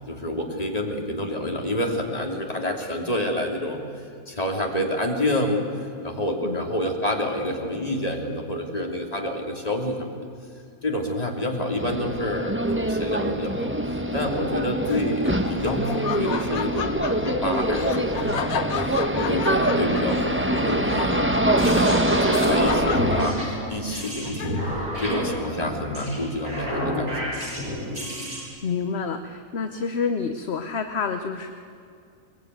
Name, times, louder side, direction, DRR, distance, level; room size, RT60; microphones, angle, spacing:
voice 1, 0.1-3.8 4.3-5.7 6.0-10.2 10.8-13.8 14.1-18.3 18.7-23.4 23.7-24.6 25.0-27.3, left 1 dB, 25° left, 1 dB, 3.0 m, -28 dB
sound 1, 11.8-23.3, right 1 dB, 10° right, 1.1 m, -24 dB
Laughter, 14.8-24.9, left 7 dB, 70° left, 1.4 m, -34 dB
sound 2, 21.2-28.4, equal, 75° right, 8.3 m, -30 dB
voice 2, 28.6-31.5, left 5 dB, 50° left, 7 dB, 1.1 m, -28 dB
22.5 x 21.5 x 9.5 m, 2.4 s
omnidirectional pair, 1.6 m